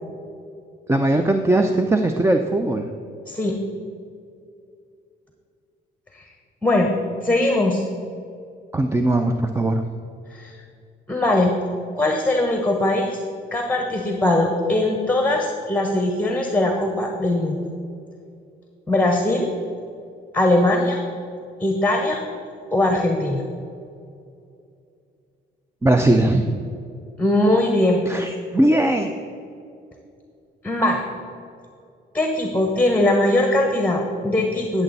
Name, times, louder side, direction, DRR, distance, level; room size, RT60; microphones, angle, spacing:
voice 1, 0.9-2.9 8.7-9.8 25.8-26.7 28.1-29.1, right 1 dB, 15° right, 6 dB, 0.5 m, -19 dB
voice 2, 3.3-3.6 6.6-6.9 7.2-7.8 10.3-10.5 11.1-11.5 11.9-13.2 13.5-17.6 18.9-19.5 20.3-21.0 21.6-22.2 22.7-23.4 27.2-28.0 30.6-31.0 32.1-34.8, left 1 dB, 10° left, 2 dB, 1.1 m, -20 dB
13.5 x 7.0 x 4.1 m, 2.5 s
cardioid pair, 90°, 20 cm